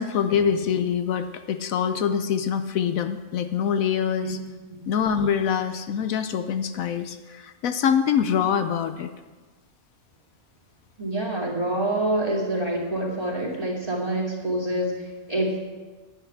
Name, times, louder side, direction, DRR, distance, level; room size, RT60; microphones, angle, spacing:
voice 1, 0.0-4.4 4.9-9.1, left 7 dB, 75° left, 9 dB, 1.1 m, -24 dB
voice 2, 11.0-15.6, right 1 dB, 25° right, -3 dB, 2.4 m, -26 dB
10.5 x 10.0 x 5.8 m, 1.3 s
omnidirectional pair, 1.5 m